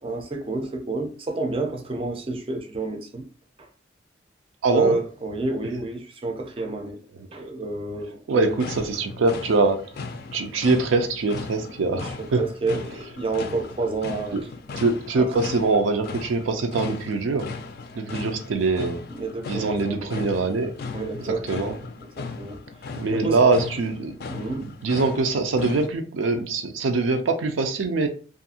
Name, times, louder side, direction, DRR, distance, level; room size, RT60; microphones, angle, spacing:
voice 1, 0.0-3.3 3.6-3.7 4.7-7.0 7.3-8.6 11.9-12.1 12.4-14.4 15.2-15.3 19.1-20.1 20.9-21.8 22.2-22.6 23.1-23.4 24.3-24.7, right 2 dB, 30° right, 0.4 m, -29 dB
voice 2, 4.6-5.0 7.2-7.3 8.3-10.1 10.3-12.4 14.3-14.4 14.7-17.5 17.9-19.0 19.5-20.7 21.2-21.8 23.0-24.2 24.6-28.1, right 3 dB, 85° right, 0.4 m, -23 dB
sound 1, 8.4-25.9, left 4 dB, 50° left, 0.3 m, -37 dB
2.6 x 2.4 x 2.7 m
head